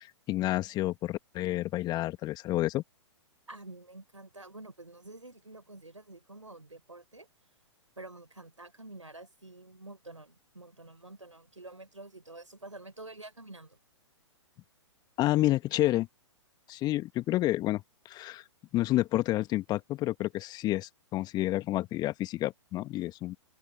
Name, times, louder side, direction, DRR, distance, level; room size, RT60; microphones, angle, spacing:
voice 1, 0.0-2.8 15.2-16.1 16.7-18.4 18.7-23.3, left 16 dB, 25° left, 1.9 m, -29 dB
voice 2, 3.5-7.3 8.0-13.8, right 2 dB, 85° right, 4.5 m, -48 dB
figure-of-eight pair, 115°, 16 cm